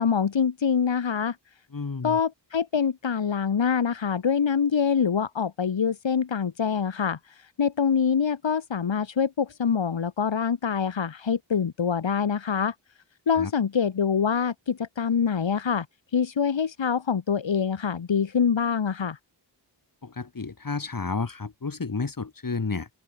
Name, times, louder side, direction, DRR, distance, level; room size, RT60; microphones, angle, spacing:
voice 1, 0.0-1.4 2.0-12.7 13.3-15.9 16.1-19.2, left 6 dB, 80° left, 4.8 m, -25 dB
voice 2, 1.7-2.2 13.4-13.5 20.0-22.9, left 4 dB, 45° left, 7.5 m, -31 dB
open air
wide cardioid pair, 70°, 44 cm